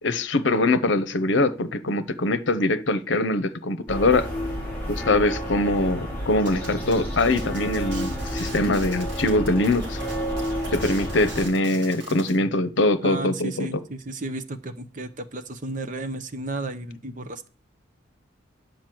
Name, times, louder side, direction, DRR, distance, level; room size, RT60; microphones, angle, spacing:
voice 1, 0.0-4.3 4.9-10.0 10.7-13.7, left 2 dB, 65° left, 0.8 m, -23 dB
sound 1, 3.9-11.5, equal, 10° left, 4.9 m, -30 dB
sound 2, 6.5-12.4, right 3 dB, 65° right, 2.9 m, -42 dB
voice 2, 13.0-17.5, right 2 dB, 40° right, 0.8 m, -33 dB
10.5 x 5.1 x 7.7 m
head